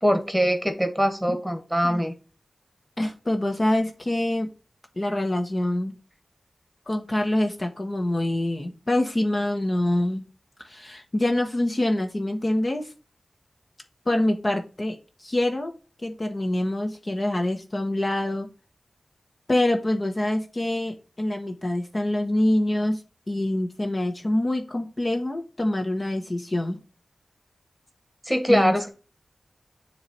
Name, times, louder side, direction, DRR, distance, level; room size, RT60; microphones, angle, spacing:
voice 1, 0.0-2.1 28.2-28.9, equal, ahead, 7 dB, 1.6 m, -22 dB
voice 2, 3.0-4.5 5.0-5.9 6.9-10.2 10.7-12.9 14.1-15.7 16.0-18.5 19.5-23.0 23.3-26.8 28.5-28.9, left 1 dB, 35° left, 4 dB, 1.1 m, -25 dB
7.2 x 3.2 x 5.4 m, 0.34 s
wide cardioid pair, 60°, 0 cm